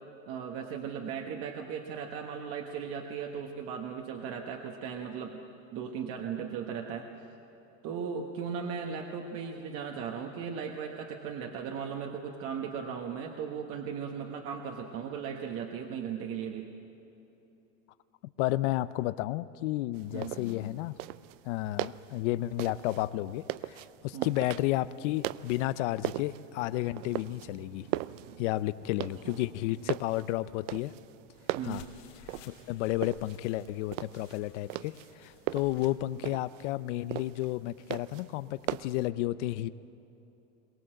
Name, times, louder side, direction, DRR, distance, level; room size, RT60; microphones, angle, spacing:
voice 1, 0.3-5.4 5.7-7.1 7.8-16.7 20.1-20.3 24.1-24.4 29.0-29.4 31.5-31.9, right 7 dB, 35° right, 2 dB, 1.2 m, -37 dB
voice 2, 18.4-21.0 21.4-27.9 28.4-30.9 31.6-31.8 32.4-39.7, left 16 dB, 65° left, 15 dB, 0.6 m, -32 dB
sound 1, 19.9-39.1, right 17 dB, 70° right, 0.6 m, -40 dB
sound 2, 31.5-36.0, left 9 dB, 80° left, 3.2 m, -56 dB
22.5 x 19.0 x 7.7 m, 3.0 s
supercardioid pair, 170°, 39 cm